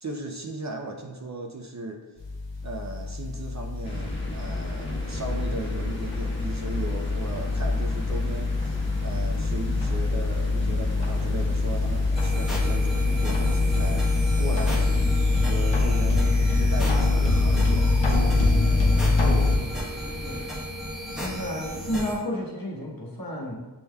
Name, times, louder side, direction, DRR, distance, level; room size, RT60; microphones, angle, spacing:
voice 1, 0.0-2.0 2.6-15.0 15.4-18.7, right 2 dB, 40° right, 3 dB, 0.5 m, -37 dB
sound 1, 2.2-19.6, left 3 dB, 75° left, 0.8 m, -24 dB
sound 2, 3.8-20.6, left 1 dB, 25° left, 1.2 m, -36 dB
sound 3, 12.2-22.1, equal, ahead, 1.0 m, -35 dB
voice 2, 21.2-23.5, left 1 dB, 55° left, -2 dB, 1.1 m, -32 dB
7.0 x 3.3 x 2.2 m, 1.1 s
wide cardioid pair, 65°, 44 cm